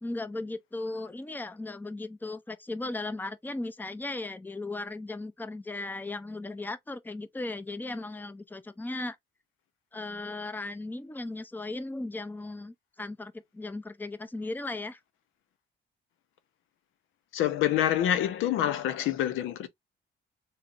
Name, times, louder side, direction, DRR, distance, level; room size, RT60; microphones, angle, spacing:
voice 1, 0.0-9.2 9.9-15.0, left 2 dB, 10° left, 0.6 m, -37 dB
voice 2, 17.3-19.7, left 11 dB, 85° left, 0.7 m, -26 dB
4.0 x 2.0 x 3.8 m
cardioid pair, 90°, 20 cm